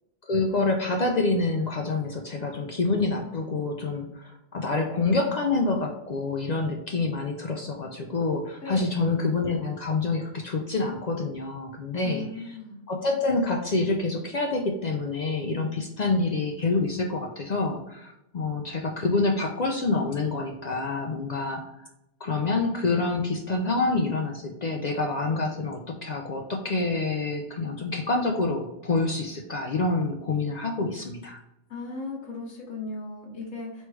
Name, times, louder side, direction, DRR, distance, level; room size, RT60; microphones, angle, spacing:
voice 1, 0.3-12.6 12.9-21.6 22.2-31.4, left 3 dB, 65° left, 2 dB, 0.4 m, -27 dB
voice 2, 8.6-9.1 12.0-12.8 31.7-33.9, left 3 dB, 80° left, -2 dB, 1.4 m, -37 dB
3.1 x 3.1 x 4.6 m, 0.87 s
omnidirectional pair, 1.3 m